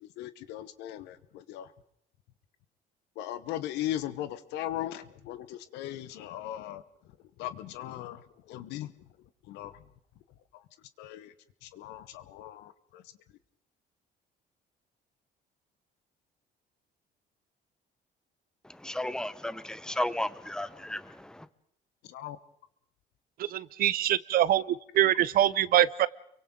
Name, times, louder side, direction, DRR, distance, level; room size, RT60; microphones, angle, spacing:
voice 1, 0.0-1.7 3.2-6.8 7.4-8.9 9.5-9.7 11.0-11.3 11.6-13.0 22.1-22.4, left 13 dB, 90° left, 13 dB, 1.1 m, -38 dB
voice 2, 18.8-21.5, left 1 dB, 5° left, 14 dB, 0.9 m, -34 dB
voice 3, 23.5-24.6 24.9-26.1, right 12 dB, 60° right, 18 dB, 0.7 m, -24 dB
30.0 x 23.5 x 3.8 m, 0.71 s
cardioid pair, 110°, 17 cm